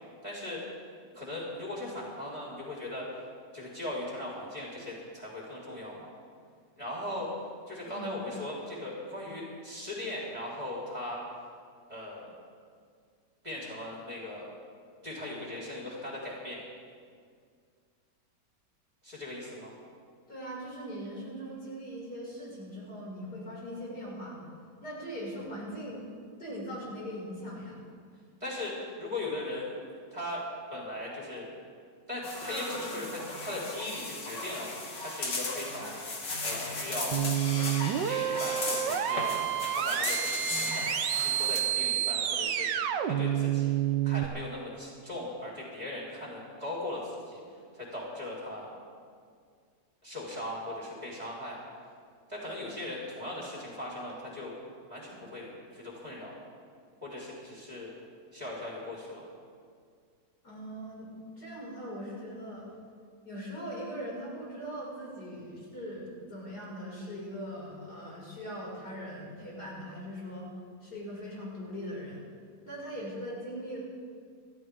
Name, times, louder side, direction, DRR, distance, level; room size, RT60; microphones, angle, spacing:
voice 1, 0.2-0.6 1.0-3.1 3.5-6.1 6.8-7.3 7.7-11.2 11.9-12.3 13.4-14.5 15.0-16.6 19.0-19.7 28.4-29.7 30.1-31.5 32.1-36.0 36.4-37.2 38.0-39.4 39.7-43.8 44.0-47.4 47.7-48.7 50.0-51.6 52.3-54.6 54.9-56.3 57.0-57.9 58.3-59.2, left 1 dB, 20° right, -6 dB, 4.4 m, -39 dB
voice 2, 20.3-24.4 24.8-26.0 26.4-27.8 60.4-62.7 63.2-70.5 70.8-72.2 72.6-73.8, equal, 60° left, -5 dB, 6.4 m, -40 dB
sound 1, 32.2-41.6, left 2 dB, 85° left, 2.9 m, -36 dB
sound 2, 37.1-44.3, right 11 dB, 85° right, 1.5 m, -29 dB
29.0 x 13.5 x 3.7 m, 2.1 s
omnidirectional pair, 1.9 m